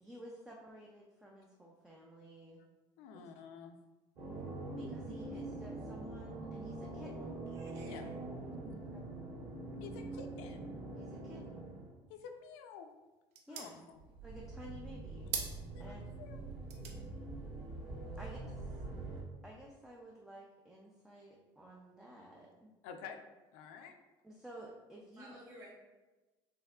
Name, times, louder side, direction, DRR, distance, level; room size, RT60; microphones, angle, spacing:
voice 1, 0.0-2.6 3.1-3.2 4.7-7.4 8.9-9.0 9.9-10.0 10.9-11.7 13.5-13.8 14.2-15.3 15.8-16.0 18.2-18.8 19.4-22.7 24.2-25.4, right 1 dB, 5° right, -3 dB, 0.3 m, -53 dB
voice 2, 3.0-3.8 7.8-8.1 9.8-10.7 12.1-12.9 13.5-14.0 15.7-16.4 16.7-16.8 22.8-23.2 23.5-23.9, left 6 dB, 85° left, 5 dB, 0.5 m, -50 dB
sound 1, 4.2-11.9 13.9-19.2, right 2 dB, 50° right, 1.5 m, -44 dB
voice 3, 7.5-8.2 25.2-25.7, right 1 dB, 35° right, -4 dB, 1.4 m, -54 dB
sound 2, 12.3-19.1, right 6 dB, 70° right, 0.7 m, -48 dB
5.6 x 3.5 x 2.3 m, 1.1 s
cardioid pair, 175°, 11 cm